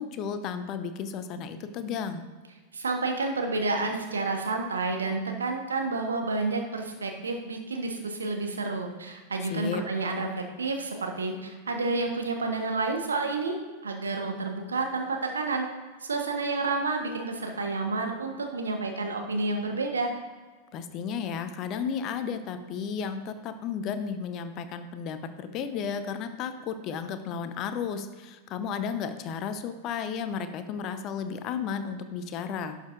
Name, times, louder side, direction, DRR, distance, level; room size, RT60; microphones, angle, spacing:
voice 1, 0.0-2.2 9.5-9.8 20.7-32.8, left 6 dB, 35° left, 9 dB, 0.7 m, -33 dB
voice 2, 2.7-13.5 13.8-15.7 16.0-20.1, right 3 dB, 70° right, 3 dB, 1.1 m, -30 dB
11.5 x 6.4 x 2.5 m, 1.4 s
figure-of-eight pair, 90°, 0 cm